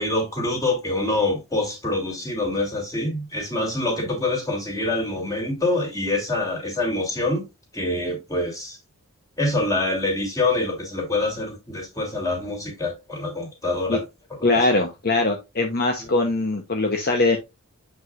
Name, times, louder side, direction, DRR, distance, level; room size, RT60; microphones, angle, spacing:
voice 1, 0.0-7.4 7.7-8.8 9.4-14.0 16.0-16.1, left 2 dB, 15° left, 3.0 m, -25 dB
voice 2, 14.4-17.4, left 2 dB, 45° left, 0.9 m, -21 dB
7.7 x 5.6 x 2.5 m
head